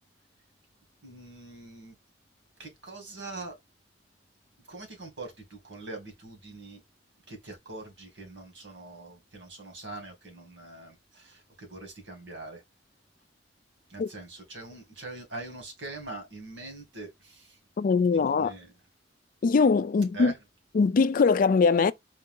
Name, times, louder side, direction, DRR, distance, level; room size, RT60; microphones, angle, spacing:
voice 1, 1.0-1.9 2.6-3.5 4.7-6.8 7.3-12.6 13.9-17.6 18.1-18.7 20.1-20.3, right 2 dB, 80° right, 2.3 m, -43 dB
voice 2, 17.8-18.5 19.4-20.3 20.7-21.9, left 4 dB, 50° left, 0.4 m, -22 dB
4.4 x 2.7 x 3.7 m
head